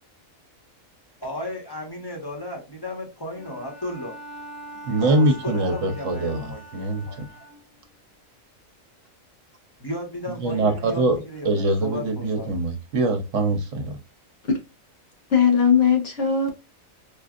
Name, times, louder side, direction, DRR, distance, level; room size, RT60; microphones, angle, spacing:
voice 1, 1.2-4.2 4.9-7.2 9.8-12.6, left 1 dB, 20° left, 1.3 m, -34 dB
Bowed string instrument, 3.4-8.0, right 1 dB, 20° right, 0.4 m, -43 dB
voice 2, 4.9-6.5 6.7-7.2 10.4-11.2 11.4-13.9, right 2 dB, 65° right, 1.1 m, -23 dB
voice 3, 15.3-16.5, left 7 dB, 60° left, 1.5 m, -18 dB
4.7 x 2.5 x 2.4 m
omnidirectional pair, 1.4 m